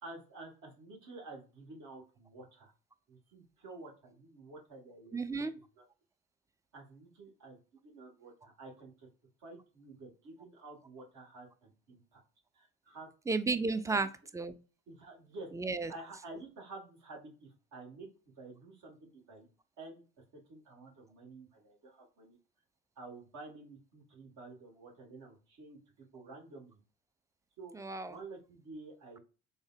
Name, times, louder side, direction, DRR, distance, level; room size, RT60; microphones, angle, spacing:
voice 1, 0.0-2.7 3.1-5.5 5.7-5.8 6.7-9.1 9.4-12.2 12.5-13.1 13.9-14.0 14.9-15.5 15.9-19.5 19.8-20.0 20.5-22.4 23.0-26.8 27.6-27.7 28.1-29.2, right 3 dB, 60° right, 0 dB, 1.5 m, -50 dB
voice 2, 5.1-5.5 13.3-14.1 14.3-14.5 15.6-15.9 27.7-28.1, right 3 dB, 10° right, 12 dB, 0.3 m, -32 dB
3.8 x 2.1 x 2.3 m, 0.34 s
supercardioid pair, 65°, 32 cm